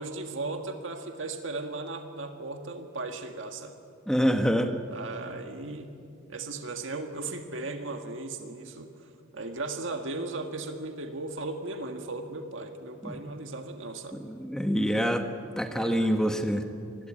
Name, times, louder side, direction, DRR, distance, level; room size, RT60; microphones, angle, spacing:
voice 1, 0.0-3.8 4.9-6.0 6.3-14.2 15.7-16.1, right 3 dB, 70° right, 5 dB, 1.8 m, -37 dB
voice 2, 4.1-4.8 13.0-13.2 14.2-15.3 15.6-16.7, equal, 5° left, 6 dB, 1.2 m, -26 dB
26.0 x 21.0 x 8.9 m, 2.5 s
head